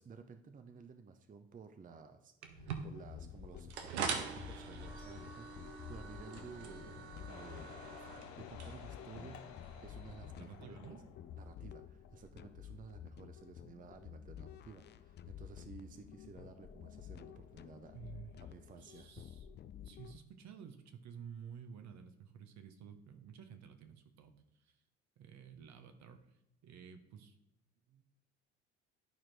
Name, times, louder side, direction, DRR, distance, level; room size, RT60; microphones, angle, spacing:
voice 1, 0.0-7.8 8.4-11.0 11.3-18.0 18.5-19.1, right 5 dB, 25° right, 8 dB, 0.6 m, -54 dB
sound 1, 2.4-10.3, right 6 dB, 85° right, 0.7 m, -44 dB
sound 2, 2.6-20.2, left 9 dB, 35° left, 0.4 m, -52 dB
sound 3, 7.3-11.7 12.0-12.1, left 9 dB, 60° left, 0.8 m, -54 dB
voice 2, 9.1-9.9 10.4-11.0 17.9-18.4 18.8-19.5 19.8-24.8 25.2-27.3 27.9-28.0, right 7 dB, 55° right, 8 dB, 0.9 m, -53 dB
11.5 x 4.3 x 3.2 m, 0.86 s
hypercardioid pair, 55°, 33 cm